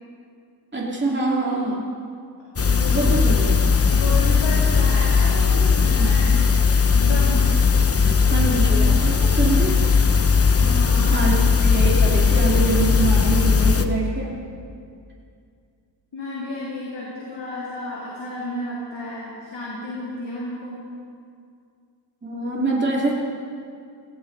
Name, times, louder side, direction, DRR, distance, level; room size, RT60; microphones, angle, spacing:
voice 1, 0.7-1.8 2.9-3.6 6.0-6.4 8.3-9.8 11.1-14.4 22.2-23.1, right 3 dB, 25° right, -4 dB, 2.6 m, -25 dB
sound 1, 2.6-13.9, left 5 dB, 35° left, 0.8 m, -18 dB
voice 2, 2.7-3.2 3.9-6.4 6.9-7.5 10.6-11.3 16.1-20.8, left 2 dB, 85° left, -6 dB, 3.0 m, -32 dB
17.5 x 17.0 x 4.0 m, 2.3 s
wide cardioid pair, 105°, 43 cm